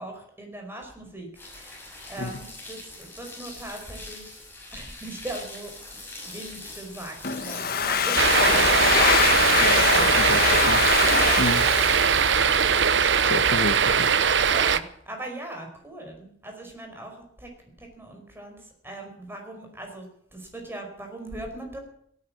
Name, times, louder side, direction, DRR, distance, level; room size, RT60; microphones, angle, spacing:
voice 1, 0.0-4.4 4.7-5.7 6.2-7.1 7.4-8.2 8.5-10.4 10.8-11.7 14.5-17.5 17.8-21.8, right 1 dB, 15° right, 3 dB, 4.9 m, -40 dB
sound 1, 1.3-7.6, left 2 dB, 10° left, 6.2 m, -42 dB
Domestic sounds home sounds, 7.2-12.9, left 6 dB, 55° left, 1.4 m, -24 dB
sound 2, 8.2-14.8, right 7 dB, 70° right, 0.8 m, -21 dB
voice 2, 9.6-10.8 11.4-11.6 12.9-14.1, left 2 dB, 75° left, 6 dB, 1.2 m, -30 dB
17.5 x 9.8 x 8.6 m, 0.67 s
head